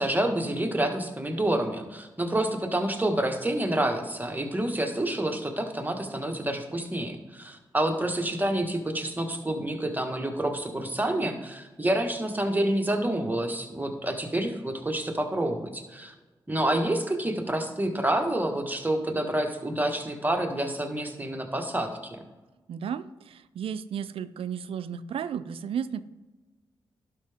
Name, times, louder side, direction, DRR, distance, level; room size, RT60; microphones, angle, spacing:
voice 1, 0.0-16.1 16.5-22.2, right 1 dB, 20° right, 3 dB, 1.6 m, -28 dB
voice 2, 22.7-26.0, right 8 dB, 75° right, 14 dB, 0.4 m, -33 dB
11.5 x 5.7 x 3.6 m, 1.2 s
supercardioid pair, 40°, 10 cm